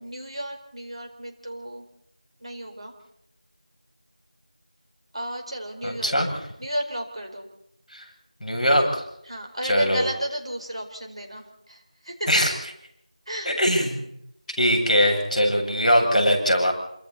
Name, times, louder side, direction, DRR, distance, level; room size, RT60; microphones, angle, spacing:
voice 1, 0.0-1.8 2.4-2.9 5.1-6.1 6.6-7.5 9.3-12.4 13.3-13.9, equal, 45° right, 3 dB, 4.5 m, -33 dB
voice 2, 5.8-6.4 7.9-8.0 8.4-9.0 9.6-10.0 12.3-12.5 13.4-14.0 14.6-16.7, equal, ahead, -21 dB, 4.9 m, -21 dB
27.5 x 25.0 x 4.2 m, 0.77 s
figure-of-eight pair, 175°, 4 cm